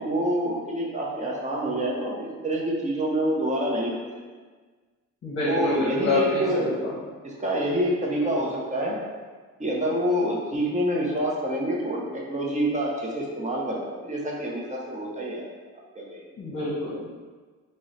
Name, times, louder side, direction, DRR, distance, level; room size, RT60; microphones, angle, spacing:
voice 1, 0.0-3.9 5.4-6.7 7.2-9.0 9.6-15.5 15.9-16.2, right 1 dB, 25° right, -3 dB, 0.6 m, -27 dB
voice 2, 5.2-6.9 16.4-17.1, left 2 dB, 45° left, -8 dB, 0.8 m, -26 dB
3.0 x 2.0 x 3.8 m, 1.4 s
cardioid pair, 115°, 31 cm